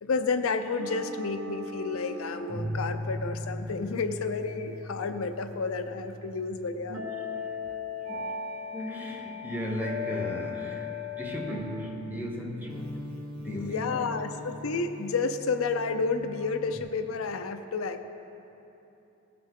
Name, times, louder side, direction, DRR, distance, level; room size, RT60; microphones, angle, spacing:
voice 1, 0.0-7.0 13.4-18.0, left 4 dB, 80° left, 9 dB, 0.6 m, -31 dB
sound 1, 0.8-16.8, left 2 dB, 90° right, 1.1 m, -38 dB
voice 2, 8.7-10.9 11.2-12.9 13.4-14.1, left 1 dB, 10° right, -1 dB, 1.1 m, -36 dB
17.0 x 5.9 x 3.7 m, 2.9 s
head